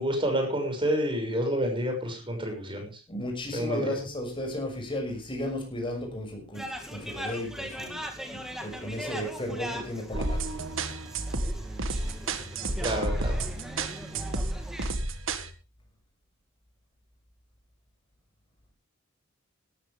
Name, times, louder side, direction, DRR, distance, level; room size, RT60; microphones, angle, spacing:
voice 1, 0.0-2.9 3.5-3.9 12.8-13.4, equal, 25° right, 3 dB, 6.0 m, -29 dB
voice 2, 3.1-8.0 8.3-10.6, left 1 dB, 25° left, 2 dB, 6.3 m, -34 dB
sound 1, 6.5-14.9, equal, ahead, 2.4 m, -40 dB
sound 2, 10.1-15.5, right 2 dB, 65° right, 1.8 m, -31 dB
17.5 x 13.5 x 3.4 m, 0.31 s
head